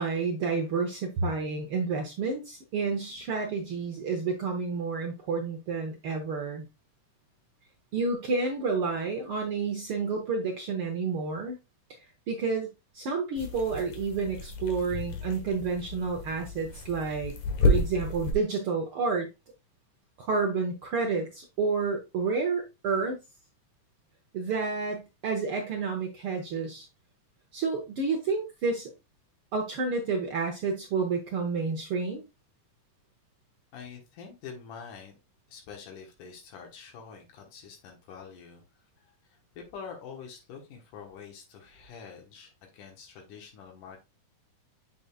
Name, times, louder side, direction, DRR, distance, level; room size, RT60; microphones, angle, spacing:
voice 1, 0.0-6.6 7.9-11.6 12.3-12.7 12.9-17.3 17.6-19.3 20.2-23.2 24.3-26.9 27.5-28.9 29.5-32.2, right 4 dB, 70° right, 3 dB, 1.3 m, -30 dB
sound 1, 13.4-18.3, left 2 dB, 65° left, 2.4 m, -31 dB
voice 2, 33.7-35.1 35.5-38.6 39.0-44.0, left 6 dB, 90° left, 2 dB, 2.8 m, -46 dB
6.9 x 6.3 x 2.3 m, 0.25 s
omnidirectional pair, 3.6 m